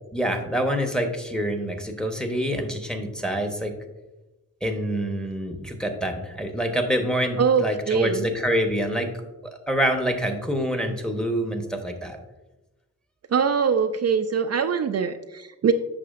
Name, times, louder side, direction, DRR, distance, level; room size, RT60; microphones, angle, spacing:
voice 1, 0.1-3.7 4.6-9.1 9.4-12.2, equal, ahead, 5 dB, 1.0 m, -26 dB
voice 2, 7.4-8.2 13.3-15.7, right 6 dB, 50° right, 7 dB, 0.4 m, -23 dB
8.4 x 6.0 x 2.5 m, 1.1 s
cardioid pair, 60°, 33 cm